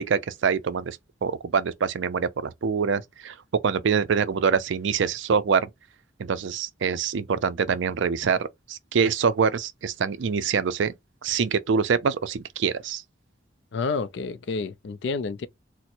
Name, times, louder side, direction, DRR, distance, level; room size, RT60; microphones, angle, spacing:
voice 1, 0.0-3.3 3.6-5.7 6.2-10.9 11.2-13.0, right 6 dB, 65° right, 0.4 m, -25 dB
voice 2, 13.7-15.5, left 4 dB, 60° left, 0.4 m, -29 dB
4.3 x 2.0 x 2.5 m
head